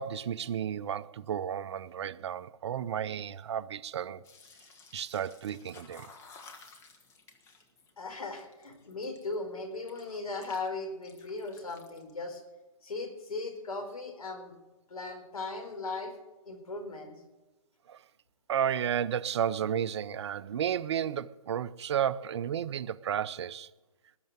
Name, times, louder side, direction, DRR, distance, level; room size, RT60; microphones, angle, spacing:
voice 1, 0.0-4.2 4.9-6.1 17.9-18.0 18.5-23.7, right 9 dB, 50° right, 0.6 m, -32 dB
sound 1, 4.2-9.3 9.7-10.7 10.9-12.2, left 4 dB, 15° left, 1.2 m, -55 dB
voice 2, 8.0-12.4 12.8-14.6 14.9-16.1 16.4-17.1, left 3 dB, 85° left, 4.6 m, -38 dB
19.5 x 6.7 x 9.2 m
hypercardioid pair, 145°, 18 cm